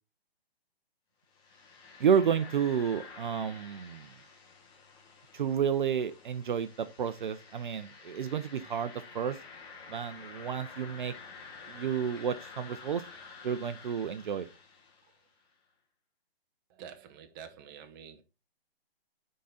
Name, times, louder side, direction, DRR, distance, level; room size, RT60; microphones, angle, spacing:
sound 1, 1.3-15.3, left 4 dB, 15° left, 1.7 m, -50 dB
voice 1, 2.0-4.1 5.3-9.4 9.9-11.1 11.7-13.0 13.4-14.5, right 7 dB, 50° right, 0.7 m, -31 dB
voice 2, 16.7-18.2, right 8 dB, 20° right, 0.9 m, -48 dB
9.3 x 3.8 x 4.1 m
hypercardioid pair, 155°, 31 cm